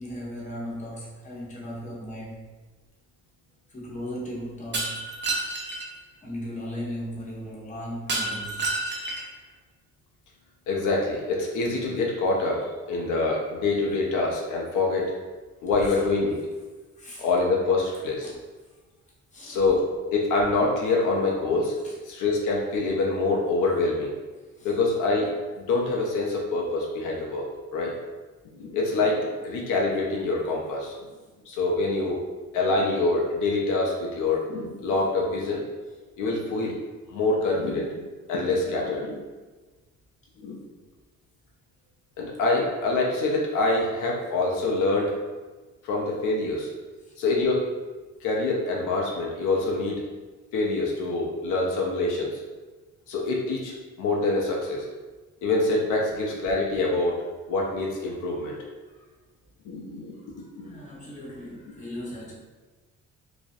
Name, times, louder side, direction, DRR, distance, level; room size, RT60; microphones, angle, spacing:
voice 1, 0.0-2.5 3.7-5.0 6.2-8.7 15.8-16.1 16.9-17.3 17.9-18.4 18.7-18.8 19.3-19.6 21.8-22.0 24.3-24.7 35.9-36.0 47.0-47.2 58.9-59.1 60.1-62.3, equal, 25° left, -5 dB, 0.8 m, -38 dB
Shatter, 4.7-5.9 8.1-9.4, right 2 dB, 35° right, 0.5 m, -29 dB
voice 2, 10.7-15.1 15.6-16.4 17.2-18.3 19.4-21.7 22.1-24.1 24.6-25.3 25.6-27.5 27.7-27.9 28.5-31.0 31.5-32.2 32.5-35.6 36.2-36.7 37.1-38.0 38.3-39.2 40.4-40.6 42.2-45.1 45.8-46.7 47.2-47.6 48.2-50.0 50.5-52.3 53.1-54.9 55.4-57.2 57.5-58.6 59.6-60.2 60.6-60.7, left 3 dB, 90° left, -2 dB, 0.5 m, -25 dB
2.4 x 2.0 x 2.5 m, 1.3 s
cardioid pair, 90°, 30 cm